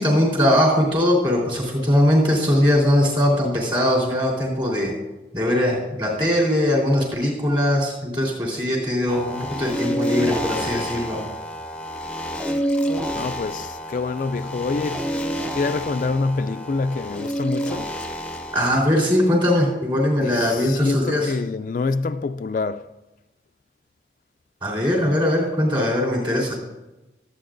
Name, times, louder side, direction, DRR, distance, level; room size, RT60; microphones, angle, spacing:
voice 1, 0.0-4.9 5.3-11.2 18.5-21.3 24.6-26.5, left 1 dB, 30° right, 3.6 m, -20 dB
sound 1, 9.1-18.9, equal, 5° left, 0.6 m, -28 dB
voice 2, 13.1-15.1 15.5-17.9 20.2-22.9, left 3 dB, 45° left, 0.3 m, -26 dB
22.5 x 8.5 x 2.6 m
head